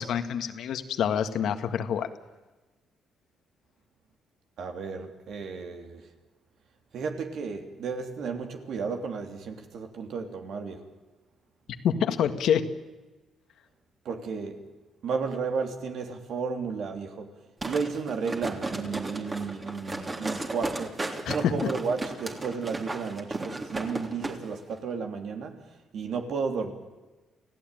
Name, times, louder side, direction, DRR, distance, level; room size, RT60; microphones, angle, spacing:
voice 1, 0.0-2.1 11.8-12.6 21.2-21.5, left 8 dB, 75° left, 1.7 m, -26 dB
voice 2, 4.6-6.1 6.9-10.9 14.0-14.6 15.0-17.3 17.6-26.7, right 5 dB, 70° right, 3.2 m, -33 dB
sound 1, 17.6-24.4 24.7-24.8, right 2 dB, 25° right, 3.3 m, -34 dB
29.0 x 16.0 x 9.2 m
cardioid pair, 90°, 0 cm